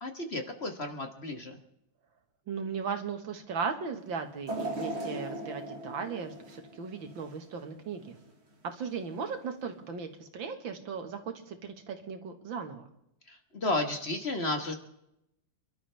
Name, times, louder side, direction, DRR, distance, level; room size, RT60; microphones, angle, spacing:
voice 1, 0.0-1.6 13.3-14.7, left 2 dB, 35° left, 5 dB, 1.7 m, -33 dB
voice 2, 2.5-8.2 8.6-12.8, right 5 dB, 85° right, 6 dB, 2.5 m, -37 dB
sound 1, 4.5-7.6 8.1-8.2 9.2-9.3, right 1 dB, 35° right, 2.3 m, -38 dB
27.5 x 12.5 x 3.5 m, 0.81 s
omnidirectional pair, 2.0 m